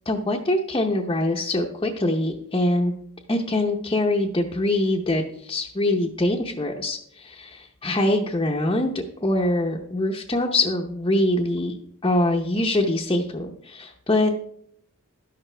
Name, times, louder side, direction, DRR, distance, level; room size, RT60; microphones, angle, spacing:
voice 1, 0.1-2.9 3.3-11.8 12.0-14.3, left 1 dB, 20° left, 0 dB, 0.8 m, -24 dB
13.0 x 11.0 x 3.3 m, 0.71 s
head